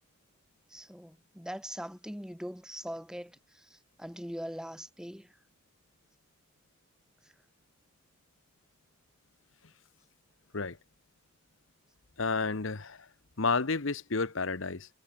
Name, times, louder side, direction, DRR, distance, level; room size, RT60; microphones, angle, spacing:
voice 1, 0.7-5.3, equal, 5° right, 1.7 m, -42 dB
voice 2, 12.2-13.1 13.4-14.9, left 4 dB, 70° left, 1.1 m, -31 dB
head